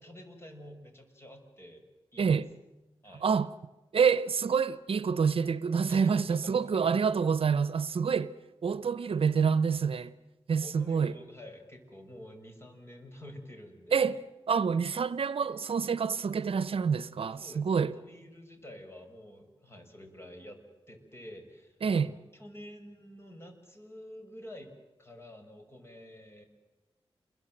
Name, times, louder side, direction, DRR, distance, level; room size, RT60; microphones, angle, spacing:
voice 1, 0.0-1.8 2.1-2.4 3.0-3.3 5.9-6.9 10.6-14.2 17.2-20.6 20.9-24.7 25.0-26.5, left 1 dB, 25° left, 6.3 m, -49 dB
voice 2, 2.2-2.5 3.2-3.5 3.9-8.3 8.6-10.2 10.5-11.1 13.9-14.2 14.5-18.0 21.8-22.1, right 6 dB, 70° right, 0.8 m, -27 dB
29.0 x 22.0 x 7.9 m
wide cardioid pair, 80°, 10 cm